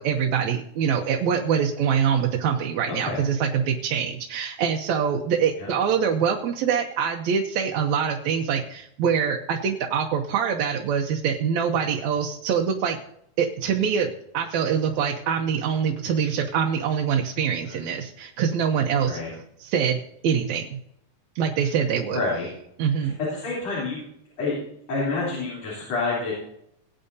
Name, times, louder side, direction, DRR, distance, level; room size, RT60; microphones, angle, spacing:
voice 1, 0.0-13.0 13.4-14.1 14.3-19.2 19.6-20.0 20.2-20.8 21.4-22.2 22.8-23.2, right 7 dB, 75° right, 1 dB, 2.1 m, -24 dB
voice 2, 2.9-3.2 5.6-5.7 17.6-17.9 19.0-19.3 22.1-22.5 23.0-24.0 24.4-24.6 24.9-26.3, left 3 dB, 60° left, -7 dB, 4.7 m, -28 dB
19.0 x 9.0 x 2.7 m, 0.73 s
omnidirectional pair, 3.3 m